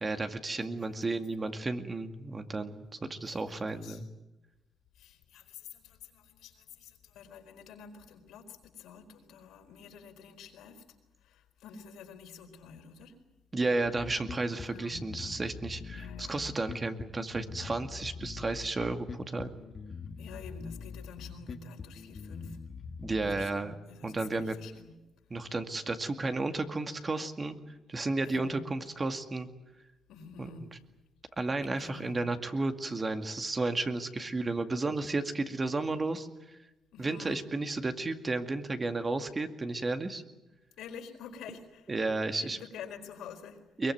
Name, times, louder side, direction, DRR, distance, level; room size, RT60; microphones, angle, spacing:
voice 1, 0.0-4.1 13.5-19.5 23.0-23.7 24.0-24.5 25.3-27.6 27.9-29.5 30.4-30.5 31.4-36.3 37.0-40.2 41.9-42.6 43.8-43.9, right 3 dB, 25° right, 7 dB, 2.2 m, -32 dB
voice 2, 4.9-10.8 11.2-13.2 14.6-15.0 15.9-16.4 20.2-22.6 23.2-25.0 28.2-28.6 30.1-30.7 31.6-32.3 36.9-37.4 40.8-41.9 42.4-43.6, left 6 dB, 85° left, 5 dB, 4.4 m, -48 dB
Bass guitar, 13.8-23.4, left 5 dB, 45° left, 1.8 m, -43 dB
22.5 x 22.0 x 9.4 m, 0.99 s
cardioid pair, 90°, 0 cm